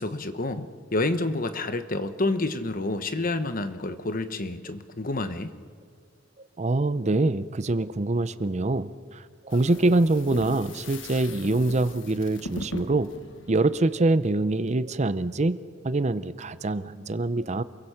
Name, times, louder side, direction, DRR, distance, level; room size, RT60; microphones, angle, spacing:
voice 1, 0.0-5.5, left 2 dB, 45° left, 10 dB, 1.2 m, -29 dB
voice 2, 6.4-13.1 13.5-15.6 15.8-17.6, right 2 dB, 35° right, 14 dB, 0.7 m, -25 dB
sound 1, 9.5-14.3, left 2 dB, 70° left, 1.5 m, -40 dB
28.5 x 22.5 x 5.8 m, 2.1 s
head